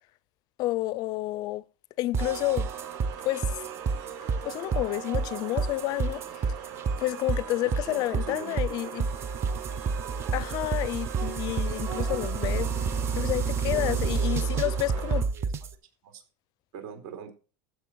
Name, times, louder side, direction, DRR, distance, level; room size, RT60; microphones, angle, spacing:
voice 1, 0.6-1.6 2.0-2.7 3.3-3.6 4.4-6.5 7.0-9.1 10.3-15.3, left 18 dB, 45° left, 0.4 m, -30 dB
sound 1, 2.1-15.7, right 5 dB, 25° right, 0.7 m, -29 dB
sound 2, 2.2-15.2, right 9 dB, 45° right, 6.4 m, -40 dB
voice 2, 7.6-8.6 8.8-9.0 13.7-15.1 15.3-15.5 16.0-16.2 16.7-17.3, right 7 dB, 75° right, 3.9 m, -41 dB
15.5 x 6.5 x 4.7 m
cardioid pair, 170°, 10 cm